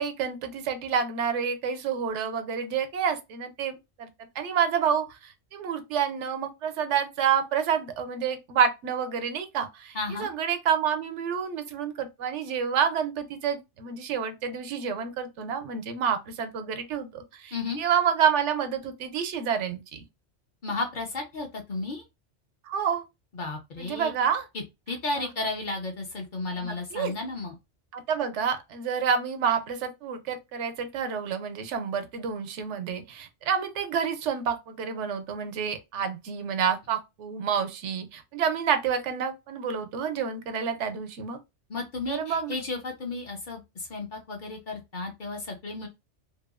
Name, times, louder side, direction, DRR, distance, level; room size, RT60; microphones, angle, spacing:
voice 1, 0.0-4.1 4.4-20.0 22.7-23.0 23.8-24.5 25.2-25.3 26.6-27.1 27.9-41.4 42.1-42.5, right 7 dB, 80° right, 0.9 m, -28 dB
voice 2, 9.9-10.3 17.5-17.8 20.6-22.0 23.3-24.1 24.5-27.6 41.7-45.9, left 3 dB, 50° left, 0.7 m, -33 dB
2.8 x 2.3 x 2.3 m
omnidirectional pair, 1.2 m